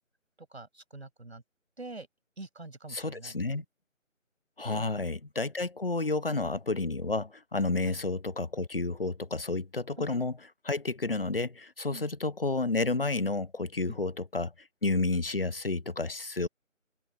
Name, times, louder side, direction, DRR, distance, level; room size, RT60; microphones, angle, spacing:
voice 1, 0.4-1.4 1.8-2.1 2.4-3.4 7.8-8.0 10.0-10.1 11.9-12.1 13.9-14.0, right 2 dB, 55° right, 6.9 m, -45 dB
voice 2, 2.9-3.6 4.6-10.3 10.6-16.5, left 3 dB, 45° left, 0.8 m, -31 dB
figure-of-eight pair, 160°, 40 cm